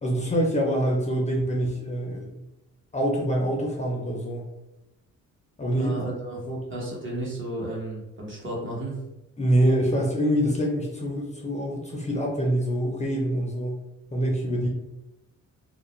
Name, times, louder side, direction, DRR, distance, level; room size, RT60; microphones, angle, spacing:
voice 1, 0.0-2.4 2.9-4.5 5.6-5.9 6.4-6.6 9.4-13.8 14.1-14.7, equal, 25° left, -1 dB, 0.5 m, -25 dB
voice 2, 5.7-9.0, right 1 dB, 40° right, -3 dB, 1.0 m, -33 dB
2.3 x 2.1 x 3.0 m, 0.96 s
cardioid pair, 90°, 30 cm